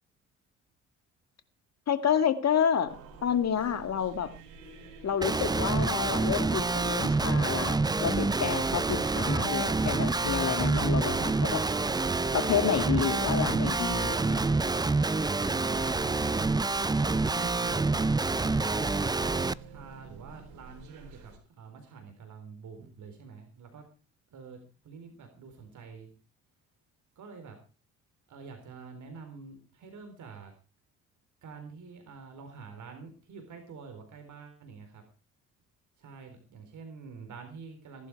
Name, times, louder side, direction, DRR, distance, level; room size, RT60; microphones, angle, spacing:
voice 1, 1.9-3.0 3.2-4.3 5.0-11.7 12.3-14.5, left 8 dB, 50° left, 10 dB, 2.2 m, -29 dB
sound 1, 2.9-21.4, right 5 dB, 75° right, 4.7 m, -47 dB
Guitar, 5.2-19.5, right 3 dB, 10° right, 0.6 m, -27 dB
voice 2, 16.0-16.3 17.0-18.2 18.6-23.8 24.3-26.1 27.2-27.6 28.3-30.5 31.4-35.0 36.0-38.1, right 5 dB, 55° right, 6 dB, 3.9 m, -47 dB
18.0 x 11.5 x 4.8 m, 0.35 s
hypercardioid pair, 50°, 35 cm